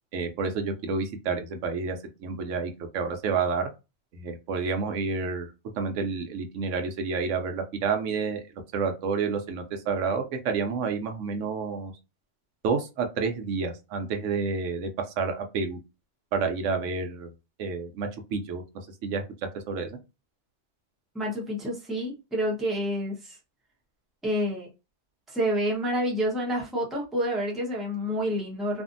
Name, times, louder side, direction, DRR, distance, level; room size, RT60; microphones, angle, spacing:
voice 1, 0.1-3.7 4.1-5.5 5.8-8.4 8.7-11.9 12.6-14.9 15.2-15.8 16.3-17.3 17.6-18.6 19.0-19.2 19.7-20.0, right 5 dB, 85° right, 1.0 m, -29 dB
voice 2, 21.1-23.4 24.2-24.7 25.3-28.8, equal, ahead, 0.7 m, -28 dB
2.6 x 2.4 x 2.5 m
omnidirectional pair, 1.3 m